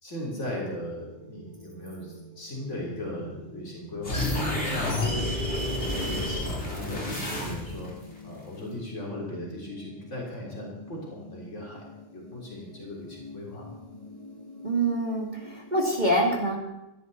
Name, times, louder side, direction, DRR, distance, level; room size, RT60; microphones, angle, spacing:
voice 1, 0.0-5.3 5.6-7.9 8.2-11.8 12.1-13.7, left 1 dB, 90° left, -3 dB, 4.1 m, -38 dB
sound 1, 0.7-16.0, left 1 dB, 30° left, 2.1 m, -47 dB
sound 2, 4.0-7.9, left 1 dB, 70° left, 4.5 m, -29 dB
voice 2, 14.6-16.6, right 1 dB, 40° right, -1 dB, 2.7 m, -25 dB
20.0 x 16.0 x 4.2 m, 0.95 s
omnidirectional pair, 1.2 m